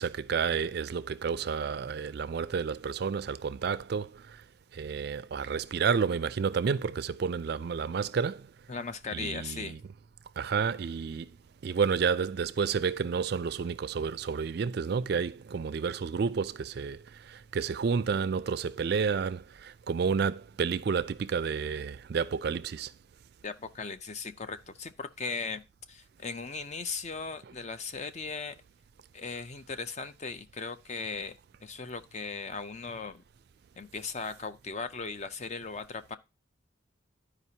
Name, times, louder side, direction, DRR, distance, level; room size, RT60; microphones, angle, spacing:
voice 1, 0.0-4.1 4.7-8.4 9.1-9.8 10.4-11.3 11.6-17.0 17.3-22.9, right 6 dB, 50° right, 0.3 m, -30 dB
voice 2, 8.7-9.8 23.4-25.6 25.9-28.6 29.1-31.3 31.6-33.2 33.8-36.2, left 4 dB, 35° left, 0.5 m, -38 dB
12.5 x 5.0 x 2.8 m
head